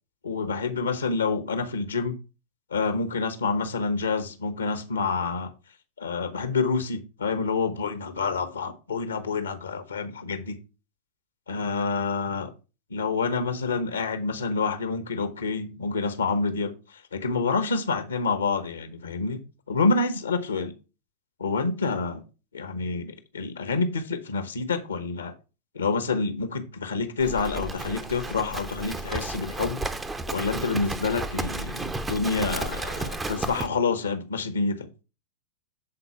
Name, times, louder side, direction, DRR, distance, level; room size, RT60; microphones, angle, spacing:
voice 1, 0.2-2.2 2.7-5.5 6.0-10.6 11.5-12.5 12.9-16.7 17.1-19.4 19.7-20.7 21.4-22.2 22.5-25.3 25.7-29.8 30.3-34.9, left 4 dB, 80° left, 0.9 m, -28 dB
Livestock farm animals working animals, 27.2-33.7, right 2 dB, 15° right, 0.8 m, -33 dB
7.7 x 4.1 x 5.7 m
figure-of-eight pair, 90°, 0 cm